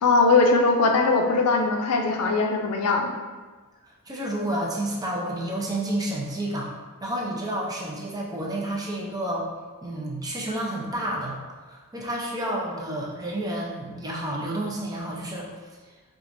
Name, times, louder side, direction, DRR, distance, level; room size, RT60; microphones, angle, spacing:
voice 1, 0.0-3.1, left 3 dB, 85° left, 3 dB, 0.4 m, -20 dB
voice 2, 4.1-6.7 7.0-9.5 9.8-15.5, right 1 dB, 15° right, -2 dB, 0.5 m, -30 dB
4.5 x 2.4 x 2.6 m, 1.3 s
head